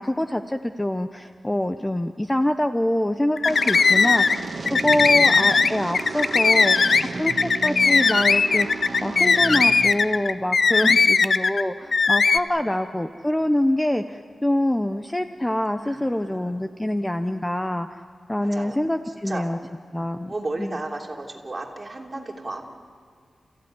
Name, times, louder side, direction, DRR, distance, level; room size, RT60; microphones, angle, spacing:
voice 1, 0.0-4.4 4.7-18.0 18.3-19.6 19.9-20.3 20.6-20.7, left 1 dB, 10° left, 8 dB, 0.6 m, -25 dB
sound 1, 3.4-4.4 4.7-11.6 11.9-12.4, left 4 dB, 55° left, 0.5 m, -18 dB
sound 2, 3.5-9.9, right 3 dB, 45° right, 1.6 m, -33 dB
voice 2, 4.3-4.8 5.2-5.3 10.7-11.4 12.6-12.7 15.8-16.6 17.2-17.6 18.4-18.8 19.3-19.4 20.3-22.6, right 2 dB, 25° right, 0 dB, 3.0 m, -35 dB
29.0 x 15.5 x 9.5 m, 2.1 s
wide cardioid pair, 135°, 0 cm